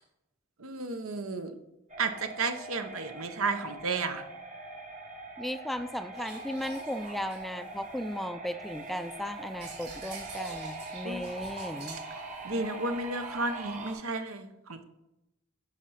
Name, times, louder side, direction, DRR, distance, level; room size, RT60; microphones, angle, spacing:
voice 1, 0.6-1.5 2.0-4.2 11.0-11.2 12.4-14.8, right 3 dB, 80° right, 8 dB, 0.9 m, -33 dB
sound 1, 1.9-13.9, right 2 dB, 35° right, 1.4 m, -43 dB
voice 2, 5.4-12.0, equal, ahead, 10 dB, 0.3 m, -36 dB
sound 2, 6.1-8.2 8.6-13.9, right 2 dB, 55° right, 3.6 m, -45 dB
10.0 x 5.0 x 5.6 m, 0.93 s
head